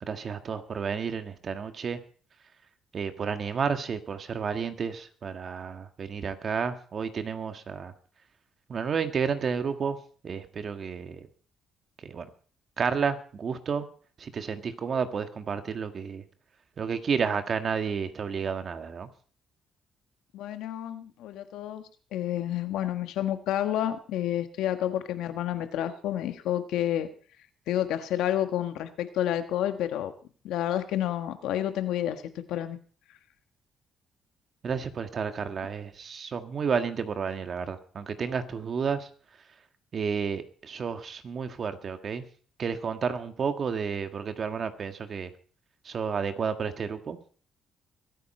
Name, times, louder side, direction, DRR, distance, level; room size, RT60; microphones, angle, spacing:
voice 1, 0.1-2.0 2.9-7.9 8.7-10.0 10.2-11.3 12.0-12.3 12.8-13.9 14.2-16.3 16.8-19.1 34.6-39.1 39.9-42.2 42.6-45.3 45.8-47.2, right 6 dB, 50° right, 8 dB, 1.7 m, -31 dB
voice 2, 20.3-21.8 22.1-27.1 27.7-30.1 30.4-32.2 32.5-32.8, left 11 dB, 90° left, 9 dB, 1.3 m, -29 dB
23.0 x 9.2 x 4.3 m, 0.42 s
cardioid pair, 90°, 0 cm